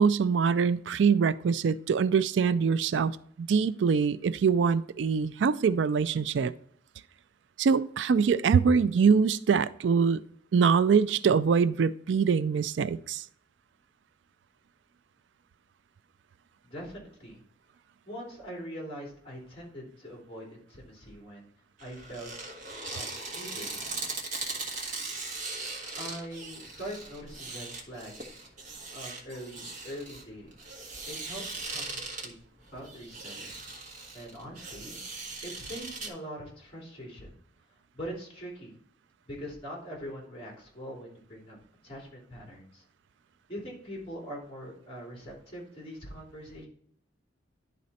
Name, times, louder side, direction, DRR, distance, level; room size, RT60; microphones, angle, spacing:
voice 1, 0.0-3.1 3.4-6.5 7.6-10.2 10.5-13.2, right 6 dB, 85° right, 15 dB, 0.4 m, -24 dB
voice 2, 16.6-17.4 18.0-21.5 21.8-22.3 22.9-23.7 26.0-28.3 28.9-30.5 31.1-32.3 32.7-33.5 34.1-35.0 35.4-37.3 37.9-38.7 39.3-41.6 41.8-42.8 43.5-46.7, equal, 30° left, -2 dB, 3.0 m, -42 dB
sound 1, 21.8-36.1, right 3 dB, 45° right, 1.4 m, -39 dB
11.0 x 4.2 x 4.1 m, 0.63 s
head